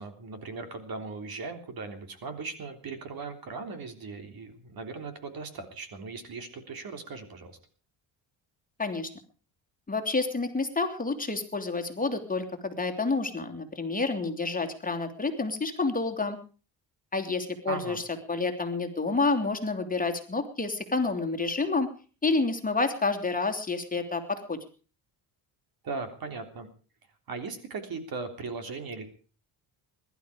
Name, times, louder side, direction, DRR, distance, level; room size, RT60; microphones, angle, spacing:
voice 1, 0.0-7.6 17.7-18.0 25.8-26.7 27.3-29.1, right 4 dB, 50° right, 7 dB, 3.5 m, -38 dB
voice 2, 8.8-9.1 9.9-16.4 17.1-18.0 18.3-21.9 22.2-24.6, left 3 dB, 20° left, 5 dB, 2.8 m, -29 dB
21.5 x 12.0 x 5.1 m, 0.39 s
cardioid pair, 105°, 44 cm